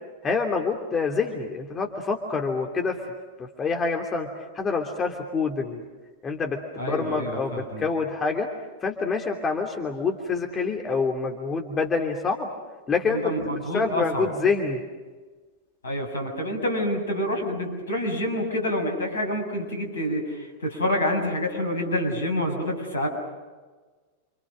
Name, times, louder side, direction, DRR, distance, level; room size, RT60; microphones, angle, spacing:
voice 1, 0.2-3.0 3.4-4.3 4.5-5.8 6.2-8.5 8.8-12.5 12.9-14.8, left 4 dB, 20° left, 2 dB, 2.9 m, -26 dB
voice 2, 6.8-7.9 13.1-14.3 15.8-23.1, left 1 dB, 70° left, 3 dB, 7.1 m, -27 dB
29.5 x 27.5 x 6.4 m, 1.3 s
figure-of-eight pair, 90°, 0 cm